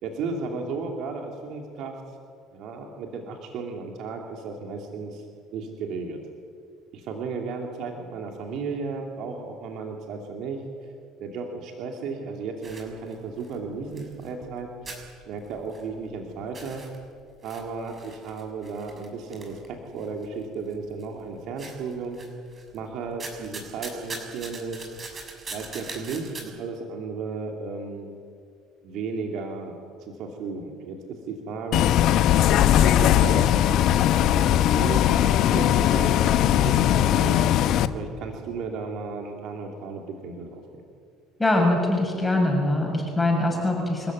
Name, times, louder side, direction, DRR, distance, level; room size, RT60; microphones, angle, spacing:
voice 1, 0.0-2.0 2.5-5.2 5.5-6.2 6.9-10.6 11.2-15.0 15.3-16.8 17.4-22.2 22.7-24.9 25.5-28.1 28.8-32.0 32.7-33.6 34.2-40.8, right 4 dB, 60° right, 2 dB, 2.8 m, -34 dB
sound 1, 12.6-14.6 14.9-16.2 16.4-20.3 20.7-21.2 21.6-22.8 23.1-26.4, right 3 dB, 35° right, 6.6 m, -41 dB
Bus, 31.7-37.9, left 11 dB, 60° left, 1.0 m, -19 dB
voice 2, 41.4-44.1, left 1 dB, 15° left, 0 dB, 6.8 m, -23 dB
27.0 x 14.5 x 9.4 m, 2.3 s
hypercardioid pair, 60°, 0 cm